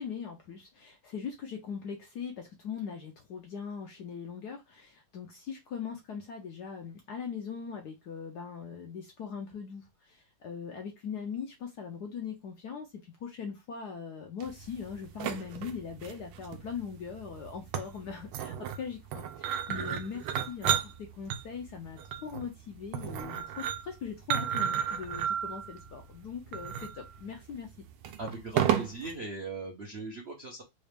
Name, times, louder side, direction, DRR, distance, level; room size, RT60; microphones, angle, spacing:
voice 1, 0.0-27.7, left 6 dB, 70° left, 1.0 m, -40 dB
sound 1, 14.4-29.1, right 9 dB, 80° right, 1.4 m, -34 dB
voice 2, 28.2-30.6, right 3 dB, 55° right, 0.6 m, -39 dB
4.1 x 2.4 x 3.3 m
omnidirectional pair, 2.3 m